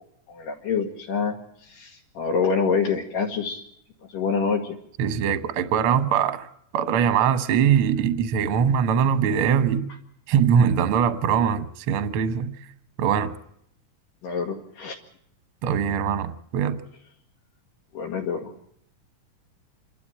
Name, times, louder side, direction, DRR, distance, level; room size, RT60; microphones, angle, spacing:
voice 1, 0.3-1.3 1.6-3.6 4.1-4.8 14.2-15.0 17.9-18.5, left 5 dB, 80° left, 3.3 m, -26 dB
voice 2, 5.0-6.5 6.7-9.9 10.3-12.5 13.0-13.3 15.6-16.8, right 8 dB, 60° right, 1.5 m, -22 dB
28.0 x 12.5 x 8.6 m
omnidirectional pair, 3.9 m